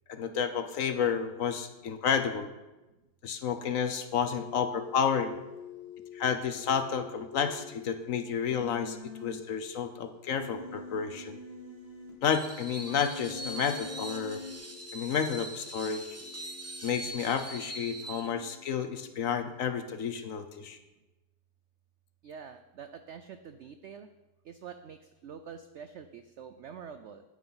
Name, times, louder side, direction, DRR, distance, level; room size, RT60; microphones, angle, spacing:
voice 1, 0.1-2.5 3.2-5.4 6.1-11.4 12.2-14.4 14.9-16.1 16.8-20.8, left 7 dB, 60° left, 8 dB, 1.0 m, -31 dB
sound 1, 4.2-19.8, left 9 dB, 80° left, 1.7 m, -51 dB
Human voice, 8.5-9.3 10.3-12.1 12.9-14.5, left 3 dB, 35° right, 2.7 m, -43 dB
Screech, 12.2-18.3, right 1 dB, 20° right, 0.4 m, -42 dB
voice 2, 22.2-24.1 24.4-27.2, right 7 dB, 80° right, 9 dB, 0.6 m, -46 dB
9.4 x 9.2 x 5.7 m, 1.0 s
omnidirectional pair, 1.8 m